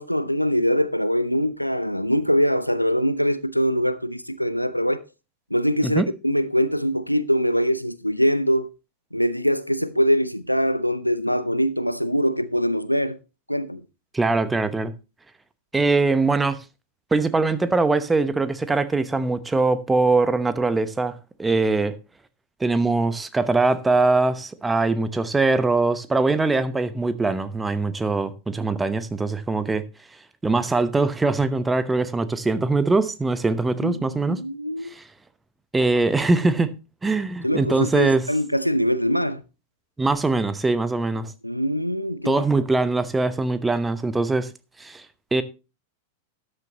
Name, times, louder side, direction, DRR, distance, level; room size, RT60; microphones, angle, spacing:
voice 1, 0.0-5.1 5.5-8.7 9.1-13.2 13.5-13.8 33.8-34.9 37.4-39.4 41.4-42.4, equal, 90° left, 0.6 m, -23 dB
voice 2, 14.1-14.9 15.7-16.6 17.1-21.1 21.4-21.9 22.6-29.9 30.4-34.4 34.9-35.0 35.7-36.7 37.0-38.3 40.0-41.3 42.3-44.5 44.8-45.0 45.3-45.4, right 3 dB, 10° right, 0.9 m, -22 dB
13.0 x 9.9 x 3.0 m
figure-of-eight pair, 90°, 0 cm